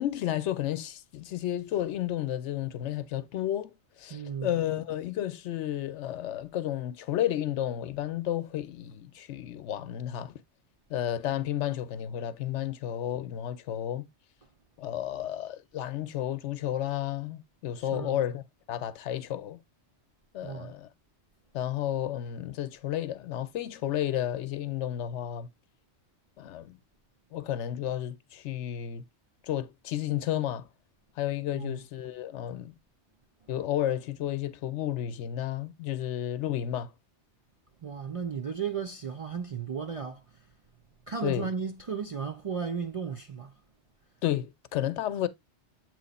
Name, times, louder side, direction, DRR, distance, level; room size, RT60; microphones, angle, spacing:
voice 1, 0.0-10.3 10.9-14.1 14.8-19.6 20.3-20.9 21.5-25.5 26.4-26.8 27.3-29.0 29.4-30.7 31.2-32.7 33.5-36.9 41.2-41.5 44.2-45.3, left 12 dB, 85° left, 0.9 m, -32 dB
voice 2, 4.1-4.6 17.8-18.2 20.4-20.7 31.5-31.8 37.8-40.2 41.1-43.5, right 6 dB, 55° right, 0.3 m, -35 dB
7.7 x 3.0 x 4.0 m
omnidirectional pair, 1.2 m